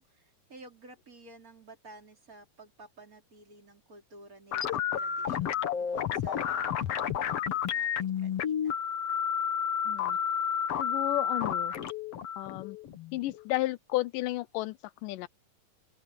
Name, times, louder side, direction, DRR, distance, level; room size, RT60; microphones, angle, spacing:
voice 1, 0.0-8.8, right 2 dB, 25° right, 4.1 m, -53 dB
sound 1, 4.5-13.4, left 8 dB, 55° left, 2.0 m, -31 dB
voice 2, 9.9-10.2 10.8-11.7 12.4-12.8 13.1-15.3, left 18 dB, 80° left, 2.1 m, -33 dB
open air
omnidirectional pair, 4.0 m